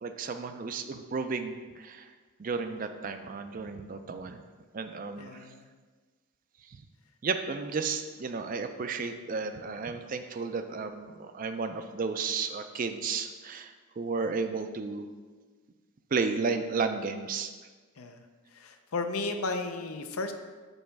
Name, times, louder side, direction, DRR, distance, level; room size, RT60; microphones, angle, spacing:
voice 1, 0.0-2.1 2.4-4.4 4.7-5.5 6.7-6.8 7.2-15.1 16.1-17.5, right 4 dB, 40° right, 8 dB, 0.4 m, -33 dB
voice 2, 5.2-5.6 18.0-18.2 18.6-20.3, left 3 dB, 80° left, 7 dB, 0.6 m, -34 dB
5.3 x 4.2 x 5.9 m, 1.4 s
head